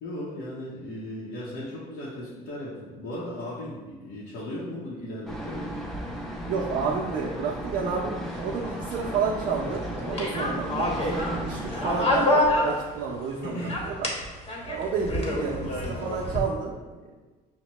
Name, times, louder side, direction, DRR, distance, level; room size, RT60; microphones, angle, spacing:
voice 1, 0.0-5.7 10.7-11.1 13.4-13.8 15.5-15.9, left 1 dB, 80° left, -8 dB, 0.9 m, -37 dB
sound 1, 5.3-12.2, right 1 dB, ahead, 0.6 m, -35 dB
voice 2, 6.5-14.1 14.6-16.8, right 5 dB, 65° right, -3 dB, 0.5 m, -31 dB
sound 2, 8.2-13.3 13.6-16.4, left 1 dB, 35° left, 1.0 m, -28 dB
5.9 x 2.1 x 3.0 m, 1.3 s
cardioid pair, 110°, 17 cm